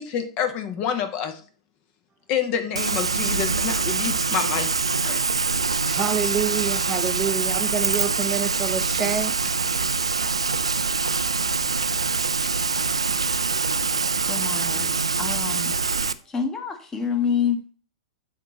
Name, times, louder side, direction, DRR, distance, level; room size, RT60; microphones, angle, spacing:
voice 1, 0.0-1.4 2.3-4.7 5.0-5.2, left 8 dB, 35° left, 9 dB, 0.9 m, -27 dB
Rain, 2.7-16.1, right 4 dB, 80° right, 0.4 m, -24 dB
voice 2, 5.9-9.3, right 7 dB, 20° right, 7 dB, 0.5 m, -27 dB
voice 3, 14.3-15.8 16.3-17.7, left 6 dB, 15° left, 7 dB, 1.2 m, -27 dB
6.5 x 4.1 x 5.8 m, 0.40 s
figure-of-eight pair, 100°, 3 cm